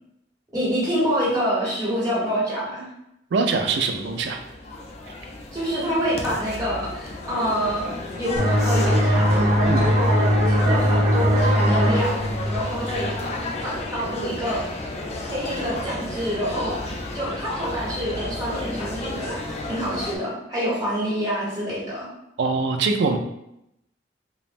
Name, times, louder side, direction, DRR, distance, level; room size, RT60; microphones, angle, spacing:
voice 1, 0.5-2.9 5.5-7.9 8.1-13.1 13.6-14.7 15.3-22.1, equal, 20° right, -8 dB, 1.1 m, -27 dB
voice 2, 3.3-4.4 9.7-9.8 22.4-23.2, right 4 dB, 65° right, 5 dB, 0.3 m, -23 dB
sound 1, 3.6-20.2, left 2 dB, 35° left, 0.3 m, -33 dB
sound 2, 8.4-13.7, equal, 45° right, 0.7 m, -20 dB
3.0 x 2.0 x 2.5 m, 0.81 s
head